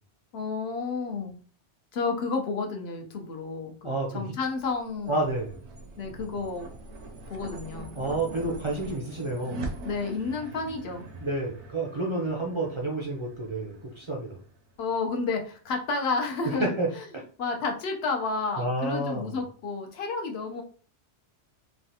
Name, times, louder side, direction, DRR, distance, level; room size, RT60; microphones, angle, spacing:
voice 1, 0.3-1.4 1.9-5.2 6.0-6.7 7.3-7.9 9.8-11.1 14.8-17.1 17.4-20.6, left 4 dB, 65° left, 4 dB, 0.9 m, -31 dB
voice 2, 3.8-4.3 5.1-5.6 7.9-9.7 11.2-14.4 16.6-17.2 18.6-19.3, right 2 dB, 45° right, -1 dB, 0.4 m, -30 dB
sound 1, 4.6-15.1, right 2 dB, 80° right, 0.9 m, -43 dB
3.2 x 2.3 x 2.7 m, 0.40 s
omnidirectional pair, 1.2 m